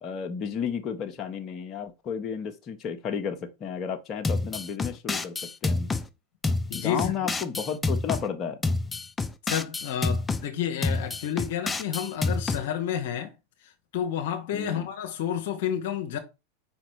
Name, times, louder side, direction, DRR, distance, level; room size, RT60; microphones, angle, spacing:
voice 1, 0.0-5.3 5.6-5.9 6.7-8.6 14.5-14.9, left 7 dB, 35° left, 1.0 m, -32 dB
sound 1, 4.2-6.1 6.4-8.2 8.6-10.4 10.8-12.6, left 3 dB, 15° left, 0.5 m, -28 dB
voice 2, 6.7-7.3 9.5-13.3 13.9-16.2, left 9 dB, 65° left, 0.9 m, -30 dB
5.1 x 4.2 x 4.6 m
hypercardioid pair, 90°, 0 cm